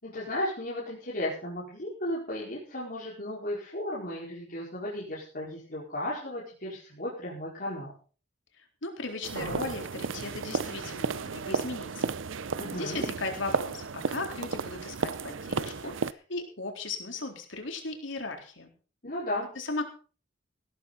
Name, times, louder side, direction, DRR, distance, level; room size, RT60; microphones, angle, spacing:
voice 1, 0.0-7.9 12.6-13.0 19.0-19.5, left 1 dB, 50° left, -6 dB, 4.9 m, -35 dB
voice 2, 8.6-12.2 12.7-18.7 19.6-19.8, left 3 dB, 80° left, 3 dB, 4.0 m, -37 dB
sound 1, 9.2-16.1, right 4 dB, 90° right, 0.7 m, -33 dB
18.0 x 12.5 x 4.1 m, 0.38 s
head